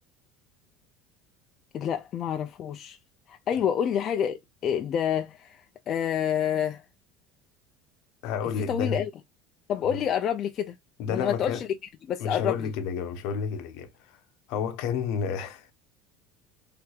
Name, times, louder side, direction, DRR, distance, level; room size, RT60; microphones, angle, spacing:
voice 1, 1.7-3.0 3.3-6.8 8.7-9.1 9.7-10.8 11.1-11.7 12.1-12.7, left 9 dB, 35° left, 0.3 m, -28 dB
voice 2, 8.2-9.1 9.9-10.0 11.0-11.6 12.2-14.2 14.5-15.7, left 6 dB, 65° left, 0.7 m, -31 dB
3.3 x 3.1 x 2.3 m
cardioid pair, 150°, 0 cm